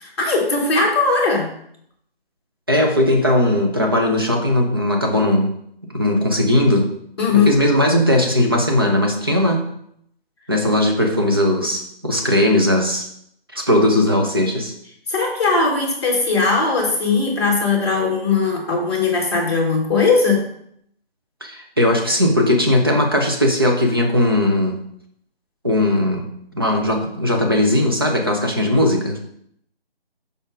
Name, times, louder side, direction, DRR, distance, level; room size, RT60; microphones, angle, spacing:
voice 1, 0.0-1.5 7.2-7.5 15.1-20.4, left 4 dB, 25° left, -3 dB, 1.6 m, -19 dB
voice 2, 2.7-5.5 5.9-6.9 7.3-9.7 10.5-13.1 13.5-14.7 21.4-24.8 25.6-26.3 26.5-29.2, left 1 dB, 25° right, 1 dB, 0.6 m, -18 dB
5.2 x 4.3 x 4.7 m, 0.70 s
figure-of-eight pair, 165°, 30 cm